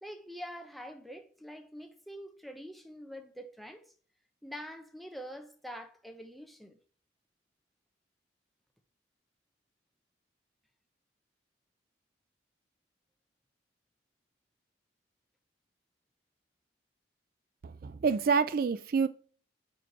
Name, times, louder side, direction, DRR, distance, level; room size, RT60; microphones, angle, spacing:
voice 1, 0.0-3.9 4.4-6.8, equal, ahead, 0.6 m, -45 dB
voice 2, 17.6-19.1, right 5 dB, 50° right, 0.3 m, -27 dB
5.0 x 4.7 x 5.8 m
head